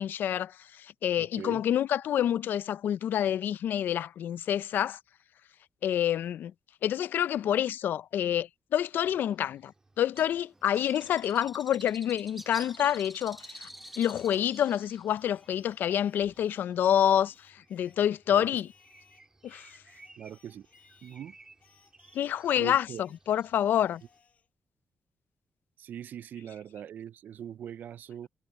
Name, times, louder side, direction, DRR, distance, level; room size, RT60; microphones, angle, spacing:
voice 1, 0.0-5.0 5.8-6.5 6.8-9.7 10.0-13.7 14.0-18.7 19.4-19.7 22.1-24.0, left 10 dB, 80° left, 0.4 m, -28 dB
voice 2, 1.2-1.6 18.3-18.5 20.2-20.7 21.0-21.3 22.6-23.0 25.8-28.3, right 9 dB, 65° right, 0.4 m, -41 dB
sound 1, 9.0-24.2, right 3 dB, 20° right, 3.1 m, -61 dB
Bird, 10.1-17.4, equal, 5° right, 1.1 m, -49 dB
Singing, 11.7-14.6 15.1-18.1 18.5-21.2 21.6-24.5, left 6 dB, 45° left, 5.6 m, -64 dB
wide cardioid pair, 145°, 3 cm